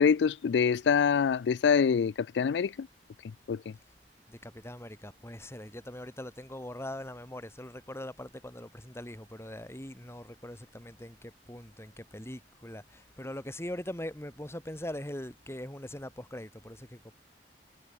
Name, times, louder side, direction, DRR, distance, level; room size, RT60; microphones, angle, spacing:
voice 1, 0.0-2.9 3.5-3.6, left 6 dB, 70° left, 0.4 m, -25 dB
voice 2, 4.3-17.1, left 1 dB, 15° left, 4.6 m, -42 dB
head